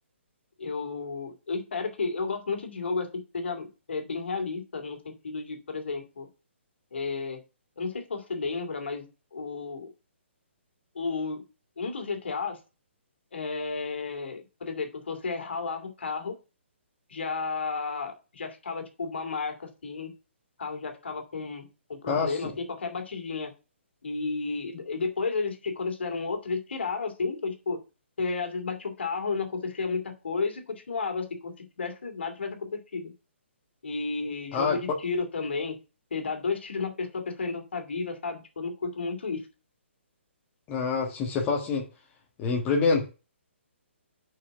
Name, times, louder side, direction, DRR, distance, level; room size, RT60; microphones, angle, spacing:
voice 1, 0.6-6.3 6.9-7.4 7.8-9.9 10.9-11.4 11.8-12.6 13.3-16.4 17.1-20.1 20.6-21.6 21.9-23.5 24.0-27.8 28.2-33.1 33.8-35.8 36.1-39.5, left 4 dB, 60° left, 2.6 m, -32 dB
voice 2, 40.7-41.8 42.4-43.1, left 4 dB, 25° left, 1.6 m, -26 dB
6.7 x 5.8 x 6.7 m
figure-of-eight pair, 130°, 7 cm